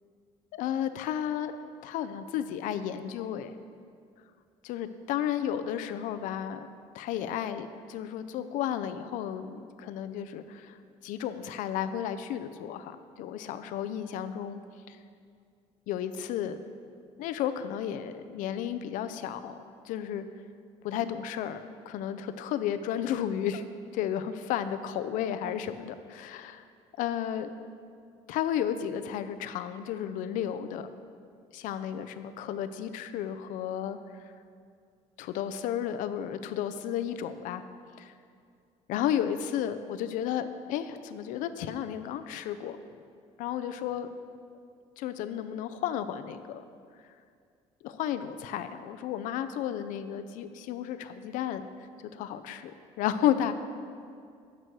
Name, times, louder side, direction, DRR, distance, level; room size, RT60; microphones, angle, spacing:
voice 1, 0.5-1.5 1.8-3.5 4.6-6.7 6.9-10.8 11.0-14.6 14.9-15.0 15.9-16.6 17.2-19.6 19.8-20.2 20.8-23.6 23.9-26.7 27.0-27.5 28.3-30.9 31.5-34.0 35.2-37.6 38.0-38.1 38.9-42.8 43.4-44.1 45.0-46.6 47.8-51.7 52.1-52.7 53.0-53.5, left 10 dB, 85° left, 11 dB, 0.5 m, -33 dB
9.3 x 6.2 x 6.1 m, 2.3 s
cardioid pair, 130°, 13 cm